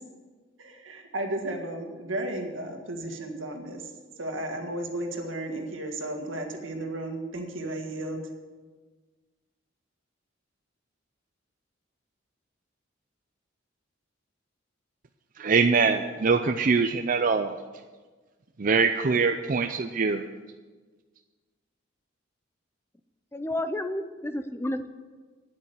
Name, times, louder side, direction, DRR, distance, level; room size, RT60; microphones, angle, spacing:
voice 1, 0.6-3.8 4.2-8.2, right 1 dB, 80° right, 4 dB, 1.8 m, -34 dB
voice 2, 15.4-17.5 18.6-20.2, right 4 dB, 45° right, 6 dB, 0.5 m, -23 dB
voice 3, 23.3-24.9, left 1 dB, 10° left, 10 dB, 0.5 m, -31 dB
9.6 x 8.7 x 8.2 m, 1.4 s
head